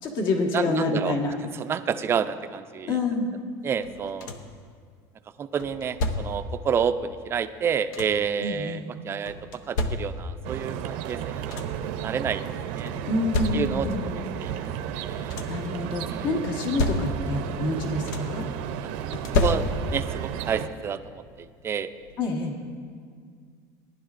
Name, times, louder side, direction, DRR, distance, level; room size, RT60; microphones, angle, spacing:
voice 1, 0.0-1.3 2.8-3.3 8.4-8.8 13.0-14.3 15.5-18.5 22.2-22.5, left 2 dB, 55° left, 1 dB, 1.5 m, -27 dB
voice 2, 0.5-1.2 1.5-2.9 3.6-4.3 5.4-9.3 9.7-11.6 11.9-12.4 12.7-12.9 13.5-14.5 14.9-15.4 16.1-16.3 19.4-21.9, right 7 dB, 25° right, 10 dB, 0.4 m, -29 dB
sound 1, 3.8-4.6 5.6-6.5 7.5-8.3 9.3-10.5 11.0-11.1 11.3-11.9 12.9-14.0 15.0-15.7 16.4-17.5 17.7-18.5 19.1-20.1 21.4-21.5 22.0-22.2, left 2 dB, 85° left, 0.8 m, -30 dB
sound 2, 10.4-20.7, right 9 dB, 70° right, 0.7 m, -33 dB
18.5 x 11.0 x 2.5 m, 2.1 s
cardioid pair, 140°, 9 cm